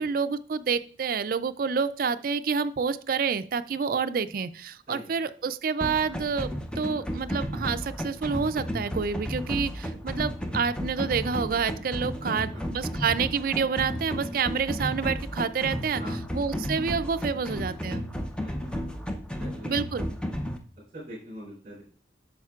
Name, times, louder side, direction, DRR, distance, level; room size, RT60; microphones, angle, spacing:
voice 1, 0.0-6.5 6.8-16.0 16.3-18.0 19.7-20.1, right 5 dB, 50° right, 11 dB, 0.4 m, -28 dB
sound 1, 5.8-20.6, equal, 5° left, 0.5 m, -33 dB
voice 2, 12.2-12.9 16.0-16.3 17.3-17.6 18.4-18.7 19.4-19.7 20.3-20.5 20.9-21.8, equal, 35° right, -8 dB, 3.7 m, -43 dB
8.8 x 6.5 x 2.4 m, 0.43 s
head